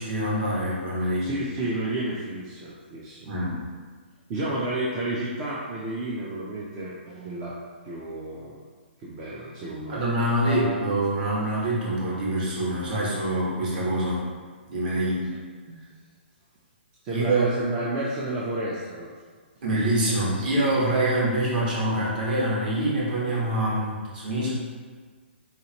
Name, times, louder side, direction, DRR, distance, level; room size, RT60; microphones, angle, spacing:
voice 1, 0.0-1.4 3.2-3.6 9.9-14.3 14.7-15.3 17.1-17.4 19.6-24.5, right 1 dB, 45° right, -6 dB, 1.2 m, -25 dB
voice 2, 1.2-3.3 4.3-7.5 7.8-8.6 9.0-10.1 10.5-10.8 14.9-15.1 15.7-15.8 17.0-19.1 20.4-20.5, right 1 dB, 15° right, -6 dB, 0.3 m, -31 dB
4.1 x 2.7 x 2.8 m, 1.5 s
hypercardioid pair, 170°, 6 cm